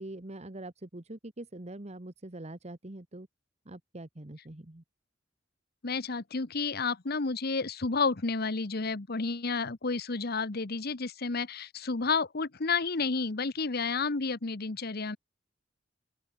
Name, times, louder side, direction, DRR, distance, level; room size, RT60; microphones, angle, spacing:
voice 1, 0.0-3.3 3.6-4.8, right 1 dB, 35° right, 1.4 m, -43 dB
voice 2, 5.8-15.2, left 4 dB, 55° left, 1.1 m, -31 dB
open air
head